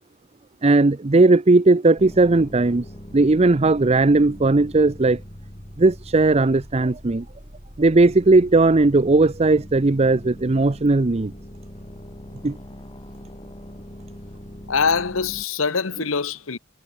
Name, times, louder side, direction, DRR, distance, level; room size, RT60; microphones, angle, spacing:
voice 1, 0.6-2.8 3.1-5.2 5.8-7.3 7.8-11.3 12.4-12.6, right 2 dB, 30° right, 0.6 m, -17 dB
sound 1, 2.0-15.5, equal, 25° left, 4.3 m, -41 dB
voice 2, 14.7-16.6, left 5 dB, 80° left, 1.1 m, -23 dB
head